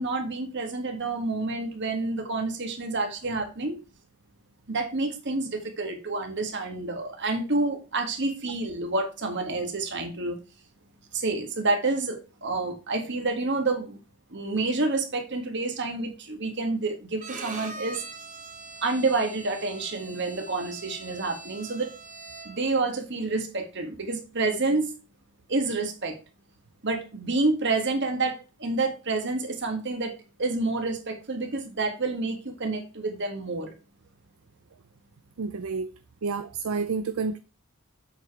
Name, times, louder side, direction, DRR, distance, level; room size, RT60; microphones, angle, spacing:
voice 1, 0.0-3.8 4.7-10.4 11.1-14.0 14.3-18.0 18.8-21.9 22.4-24.9 25.5-26.2 26.8-30.1 30.4-33.7, right 3 dB, 50° right, 1.6 m, -28 dB
Bowed string instrument, 17.2-22.8, right 3 dB, 35° right, 1.3 m, -42 dB
voice 2, 35.4-35.9 36.2-37.4, right 4 dB, 65° right, 0.5 m, -29 dB
7.6 x 4.9 x 4.7 m
head